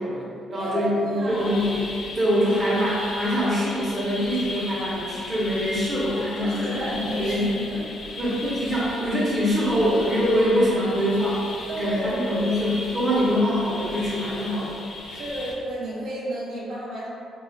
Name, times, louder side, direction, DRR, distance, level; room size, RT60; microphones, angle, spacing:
voice 1, 0.0-1.8 2.1-6.6 6.9-7.5 8.2-11.4 11.8-14.7, equal, 35° right, -7 dB, 0.7 m, -24 dB
voice 2, 0.5-1.6 2.4-2.9 6.4-8.2 11.7-12.6 15.1-17.1, right 1 dB, 85° right, -8 dB, 0.8 m, -32 dB
sound 1, 1.2-15.5, left 2 dB, 55° left, 0.4 m, -37 dB
2.9 x 2.3 x 2.6 m, 2.5 s
cardioid pair, 90°, 0 cm